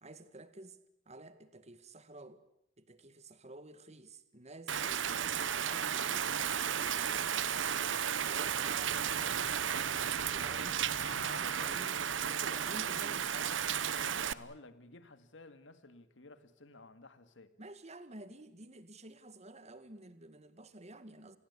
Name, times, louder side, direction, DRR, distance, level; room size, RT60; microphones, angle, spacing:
voice 1, 0.0-2.4 2.8-6.3 6.7-10.9 11.3-12.0 12.4-13.6 17.6-21.4, right 2 dB, 35° right, 2.0 m, -52 dB
Rain, 4.7-14.3, right 8 dB, 85° right, 1.0 m, -34 dB
voice 2, 10.9-12.8 14.0-17.5, left 2 dB, 75° left, 2.0 m, -53 dB
29.5 x 20.5 x 8.4 m
head